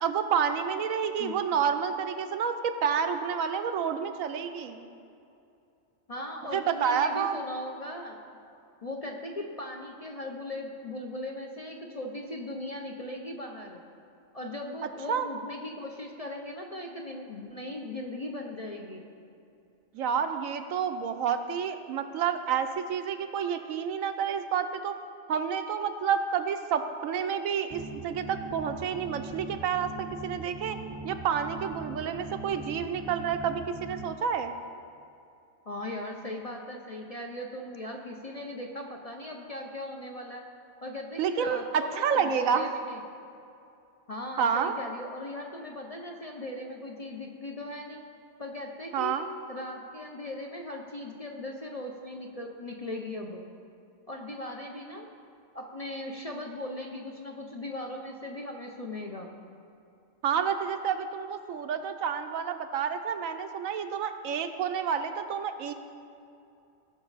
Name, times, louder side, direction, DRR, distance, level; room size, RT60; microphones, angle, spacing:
voice 1, 0.0-4.9 6.5-7.4 15.1-15.3 19.9-25.0 25.3-30.8 31.0-34.5 41.2-42.7 44.4-44.7 48.9-49.3 60.2-65.7, right 7 dB, 80° right, 8 dB, 1.1 m, -29 dB
voice 2, 6.1-8.2 8.8-13.8 14.3-19.0 35.7-40.4 40.8-43.0 44.1-48.0 48.4-49.2 49.5-53.4 54.1-55.1 55.5-59.3, left 1 dB, 35° left, 1 dB, 0.6 m, -38 dB
sound 1, 27.7-34.1, right 2 dB, 35° right, 0.5 m, -41 dB
17.5 x 6.0 x 4.0 m, 2.6 s
omnidirectional pair, 1.4 m